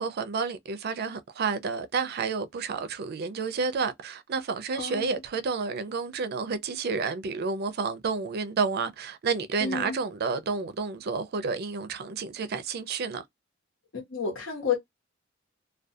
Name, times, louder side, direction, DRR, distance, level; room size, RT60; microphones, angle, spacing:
voice 1, 0.0-13.2, right 5 dB, 50° right, 0.4 m, -30 dB
voice 2, 4.8-5.1 9.6-10.0 14.1-14.8, left 6 dB, 70° left, 1.0 m, -30 dB
2.3 x 2.2 x 2.6 m
head